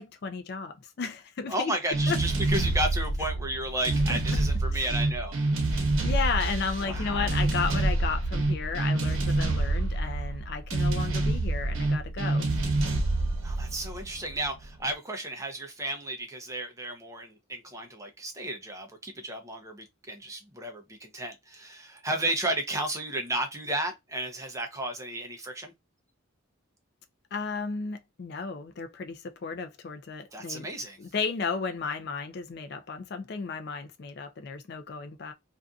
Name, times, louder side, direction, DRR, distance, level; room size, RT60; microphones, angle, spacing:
voice 1, 0.0-1.8 2.1-2.2 4.1-4.4 4.7-4.9 5.7-12.5 27.3-30.7 31.0-35.3, left 5 dB, 50° left, 0.4 m, -34 dB
voice 2, 1.5-5.4 6.8-7.2 13.4-25.7 30.3-31.0, right 1 dB, 15° right, 0.6 m, -33 dB
sound 1, 1.9-14.7, right 2 dB, 75° right, 0.9 m, -27 dB
2.5 x 2.5 x 2.3 m
head